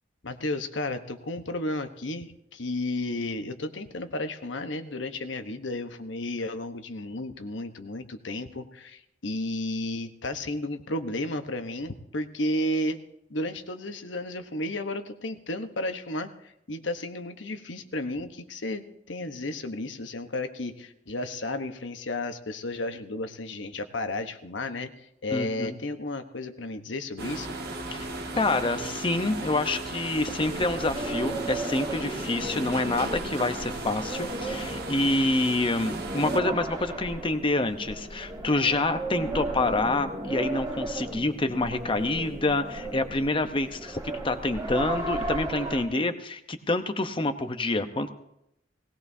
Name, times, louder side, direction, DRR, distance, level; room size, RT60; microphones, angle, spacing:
voice 1, 0.2-13.0 13.3-27.5, left 1 dB, 80° left, 7 dB, 1.1 m, -33 dB
voice 2, 25.3-25.7 27.9-28.1 28.4-44.0 44.2-48.1, left 2 dB, 30° left, 9 dB, 0.9 m, -27 dB
sound 1, 27.2-36.4, right 2 dB, 60° right, 1.6 m, -36 dB
sound 2, 30.4-45.8, right 2 dB, 20° right, 1.9 m, -35 dB
19.0 x 18.0 x 2.8 m, 0.81 s
head